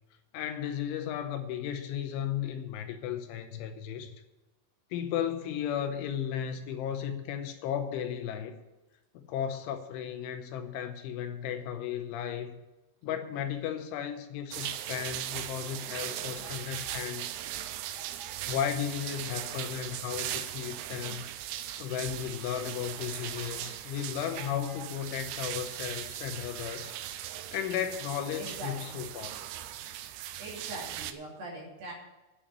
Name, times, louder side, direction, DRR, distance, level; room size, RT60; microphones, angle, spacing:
voice 1, 0.3-4.1 4.9-8.6 9.1-12.5 13.0-17.3 18.5-21.2 21.8-26.9 27.5-29.3, left 9 dB, 80° left, 7 dB, 3.1 m, -35 dB
sound 1, 14.5-31.1, right 12 dB, 80° right, 2.8 m, -39 dB
voice 2, 15.7-16.0 16.4-17.1 17.9-18.4 22.7-22.8 24.4-24.9 28.4-29.0 30.4-31.9, right 2 dB, 55° right, -2 dB, 4.0 m, -44 dB
10.0 x 7.0 x 8.9 m, 1.1 s
omnidirectional pair, 5.7 m